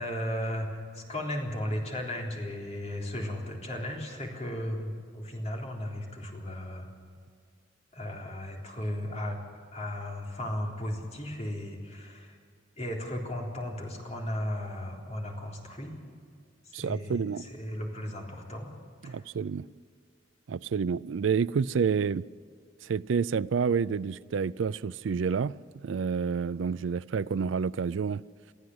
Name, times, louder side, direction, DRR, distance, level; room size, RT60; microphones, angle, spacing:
voice 1, 0.0-6.9 7.9-9.4 9.7-12.4 12.8-16.0 16.6-18.7 19.0-19.2, left 1 dB, 35° left, 3.7 m, -35 dB
voice 2, 16.7-17.5 19.1-19.7 20.5-22.2 22.8-28.2, right 6 dB, 85° right, 0.4 m, -29 dB
23.5 x 14.5 x 7.9 m
head